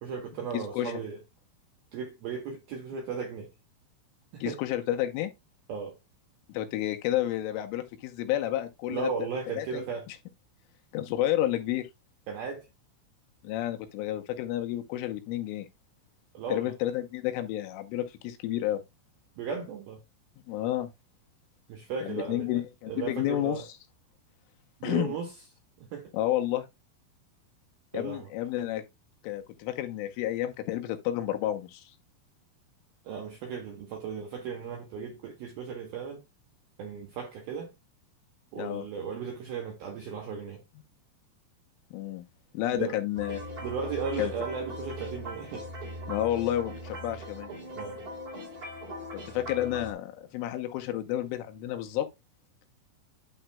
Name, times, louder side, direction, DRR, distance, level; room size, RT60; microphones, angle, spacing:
voice 1, 0.0-1.2 1.9-3.5 4.3-4.6 5.7-6.0 8.9-10.1 12.3-12.7 16.3-16.7 19.4-20.0 21.7-22.6 22.9-23.7 24.8-25.3 25.8-26.1 27.9-28.3 33.0-36.2 36.8-37.7 38.5-40.6 42.7-43.0 43.6-45.7 47.8-48.0, right 6 dB, 75° right, 2.2 m, -36 dB
voice 2, 0.5-1.0 4.4-5.3 6.5-9.1 9.6-9.8 10.9-11.9 13.4-15.7 16.5-18.8 20.5-20.9 22.0-23.7 24.8-25.1 26.1-26.7 27.9-28.8 29.2-31.9 38.6-38.8 41.9-42.2 42.5-43.4 44.2-44.3 46.1-47.5 49.1-52.1, left 13 dB, 80° left, 3.3 m, -30 dB
sound 1, 43.1-49.9, equal, 25° right, 2.3 m, -40 dB
12.0 x 4.3 x 2.3 m
omnidirectional pair, 6.0 m